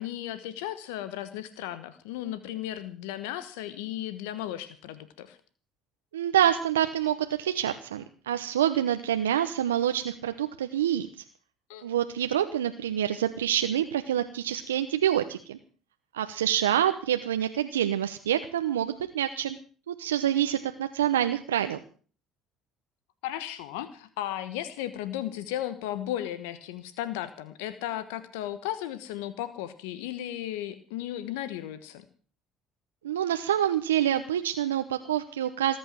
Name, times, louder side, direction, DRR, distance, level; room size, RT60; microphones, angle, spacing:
voice 1, 0.0-5.4 11.7-12.0 23.2-32.0, left 12 dB, 80° left, 13 dB, 1.3 m, -35 dB
voice 2, 6.1-11.1 11.8-15.6 16.1-19.6 19.9-21.8 33.0-35.8, right 10 dB, 90° right, 8 dB, 0.9 m, -27 dB
19.5 x 9.1 x 7.5 m, 0.41 s
hypercardioid pair, 65°, 0 cm